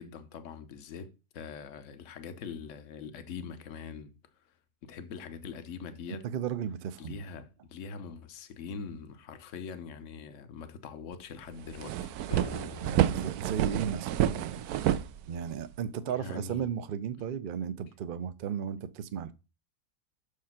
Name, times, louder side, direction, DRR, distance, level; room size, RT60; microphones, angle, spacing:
voice 1, 0.0-4.1 4.8-6.3 7.0-12.1 16.1-16.7, left 6 dB, 60° left, 1.1 m, -43 dB
voice 2, 6.1-7.2 12.8-14.6 15.3-19.3, right 8 dB, 55° right, 0.5 m, -35 dB
sound 1, 11.1-11.2 11.5-15.8, right 11 dB, 85° right, 1.1 m, -29 dB
sound 2, 12.3-13.3, left 3 dB, 20° left, 0.7 m, -43 dB
6.5 x 4.9 x 5.8 m
omnidirectional pair, 1.6 m